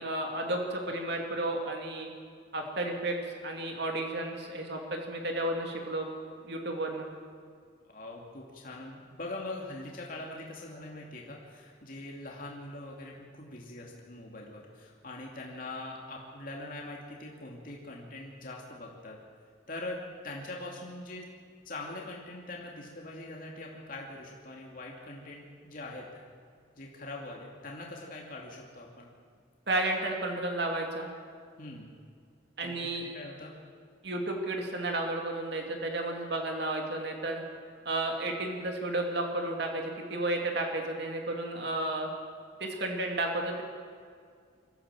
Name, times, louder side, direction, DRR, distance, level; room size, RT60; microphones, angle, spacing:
voice 1, 0.0-2.1 2.5-6.1 6.4-7.1 29.7-31.1 32.6-33.1 34.0-37.4 37.8-42.1 42.6-43.6, right 2 dB, 60° right, 2 dB, 2.6 m, -32 dB
voice 2, 7.8-19.2 19.7-21.2 21.6-26.2 26.8-29.1 31.6-31.9 32.6-33.5, left 2 dB, 45° left, -1 dB, 2.6 m, -42 dB
24.0 x 15.0 x 7.6 m, 2.1 s
head